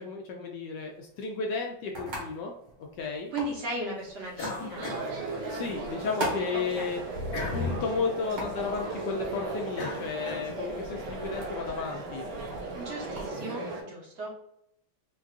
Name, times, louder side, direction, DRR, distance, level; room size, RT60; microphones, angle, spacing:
voice 1, 0.0-2.5 2.9-3.3 5.5-7.0 7.5-12.2, left 4 dB, 75° left, 1 dB, 1.0 m, -33 dB
sound 1, 0.8-13.3, right 1 dB, 60° right, 1.8 m, -42 dB
voice 2, 3.3-5.1 6.5-7.0 12.7-14.3, right 1 dB, 40° right, -3 dB, 1.0 m, -36 dB
sound 2, 4.3-5.9 6.3-10.9, left 2 dB, 55° left, 1.5 m, -38 dB
sound 3, 4.7-13.8, right 2 dB, 80° right, 1.5 m, -37 dB
4.5 x 2.4 x 2.4 m, 0.78 s
omnidirectional pair, 2.2 m